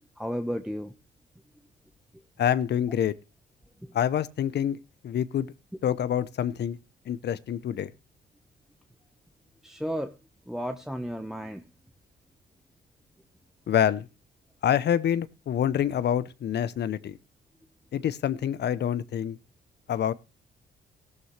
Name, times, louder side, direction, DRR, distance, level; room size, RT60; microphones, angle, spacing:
voice 1, 0.2-0.9 3.8-3.9 9.6-10.1 10.5-11.6, equal, ahead, 6 dB, 1.0 m, -33 dB
voice 2, 2.4-3.1 3.9-4.8 5.0-5.5 5.8-6.8 7.1-7.9 13.7-14.1 14.6-17.2 17.9-19.4 19.9-20.1, left 9 dB, 60° left, 16 dB, 0.7 m, -26 dB
14.5 x 12.5 x 3.2 m, 0.30 s
cardioid pair, 90°, 20 cm